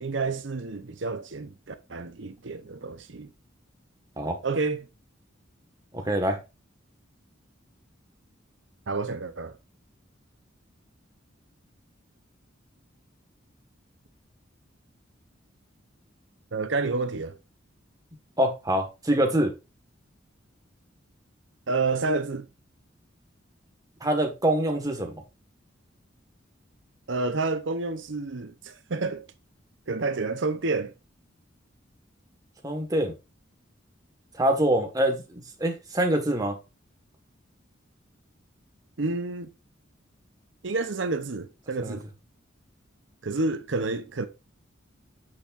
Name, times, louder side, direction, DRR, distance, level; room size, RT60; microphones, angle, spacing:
voice 1, 0.0-3.3 4.4-4.9 8.9-9.5 16.5-17.3 21.7-22.5 27.1-29.2 29.9-30.9 39.0-39.5 40.6-42.0 43.2-44.3, right 3 dB, 65° right, 0.8 m, -29 dB
voice 2, 5.9-6.4 18.4-19.5 24.0-25.2 32.6-33.1 34.4-36.6 41.8-42.0, right 1 dB, 20° right, 1.6 m, -25 dB
8.6 x 6.5 x 2.6 m
head